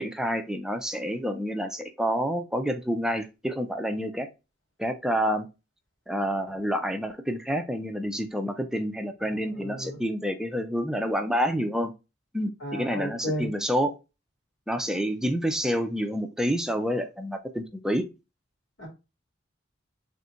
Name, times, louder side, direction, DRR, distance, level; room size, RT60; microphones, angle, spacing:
voice 1, 0.0-4.3 4.8-5.5 6.1-11.9 12.3-14.0 14.7-18.0, equal, 5° right, 0.4 m, -28 dB
voice 2, 9.2-10.0 12.6-13.5 18.8-18.9, equal, 75° left, 2.2 m, -34 dB
3.5 x 2.6 x 4.3 m
head